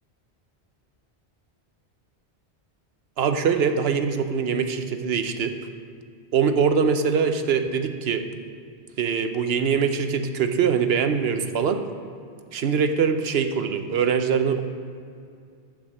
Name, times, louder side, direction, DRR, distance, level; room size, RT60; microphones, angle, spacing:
voice 1, 3.2-5.5 6.3-8.2 9.0-11.8 12.5-14.6, right 6 dB, 70° right, 7 dB, 0.9 m, -23 dB
10.5 x 4.8 x 7.3 m, 2.4 s
omnidirectional pair, 1.1 m